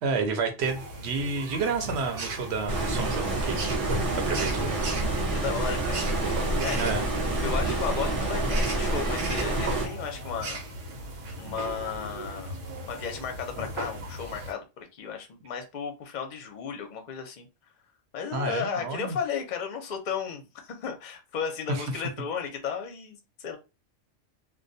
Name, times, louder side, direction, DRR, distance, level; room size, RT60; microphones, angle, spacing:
voice 1, 0.0-3.6 4.1-4.8 6.7-7.1 18.3-19.2 21.7-22.0, right 4 dB, 65° right, 0.9 m, -30 dB
sound 1, 0.6-14.5, right 1 dB, 85° right, 1.1 m, -37 dB
Stream, 2.7-9.9, right 2 dB, 40° right, 0.6 m, -28 dB
voice 2, 5.3-10.6 11.3-12.6 12.8-14.6 14.9-17.5 18.1-23.6, left 7 dB, 50° left, 0.6 m, -34 dB
2.3 x 2.2 x 2.6 m
omnidirectional pair, 1.2 m